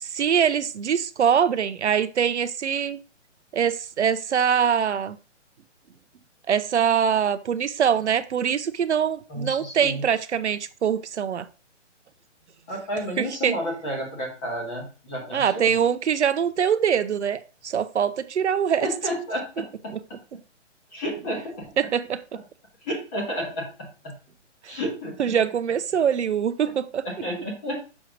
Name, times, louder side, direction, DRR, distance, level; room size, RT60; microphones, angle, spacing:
voice 1, 0.0-3.0 3.5-5.2 6.5-11.5 13.2-13.5 15.3-18.9 21.8-22.2 24.6-24.7 25.2-27.0, right 8 dB, 65° right, 0.6 m, -23 dB
voice 2, 9.3-10.0 12.7-15.7 18.8-19.9 20.9-21.7 22.8-24.1 24.7-25.1 27.0-27.8, equal, 10° left, 1.1 m, -31 dB
6.2 x 3.1 x 5.0 m
hypercardioid pair, 175°, 36 cm